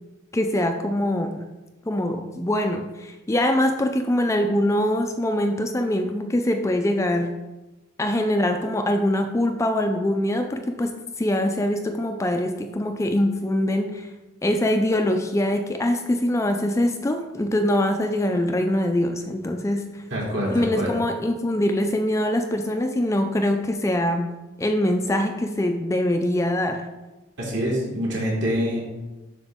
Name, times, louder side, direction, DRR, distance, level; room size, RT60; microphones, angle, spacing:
voice 1, 0.3-1.3 1.8-7.3 8.0-14.1 14.4-19.8 20.5-26.8, left 1 dB, 15° left, 5 dB, 0.3 m, -23 dB
voice 2, 20.1-20.9 27.4-28.8, equal, 65° right, -4 dB, 2.7 m, -25 dB
7.9 x 5.9 x 3.5 m, 1.1 s
head